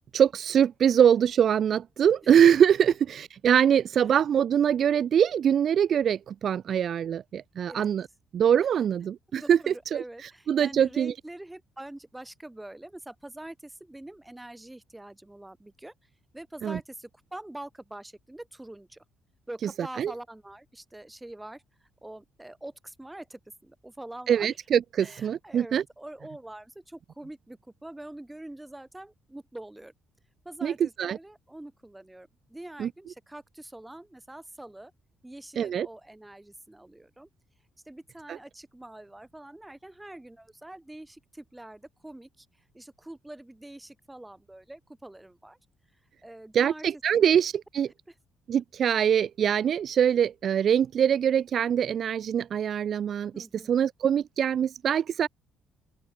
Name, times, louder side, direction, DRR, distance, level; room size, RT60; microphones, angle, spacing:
voice 1, 0.1-8.1 8.3-11.1 16.6-16.8 19.6-19.7 20.0-20.1 24.3-25.8 30.6-31.2 32.8-32.9 35.6-35.9 38.3-38.4 46.5-47.9 48.5-55.3, right 8 dB, 50° right, 0.5 m, -23 dB
voice 2, 9.3-15.9 16.3-19.0 19.5-21.6 22.0-24.6 25.0-29.9 30.5-34.9 35.2-37.3 37.9-42.5 42.7-45.6 46.2-46.9 47.1-47.5 48.1-48.2 53.3-53.8, right 1 dB, 10° right, 3.7 m, -44 dB
open air
figure-of-eight pair, 45°, 0 cm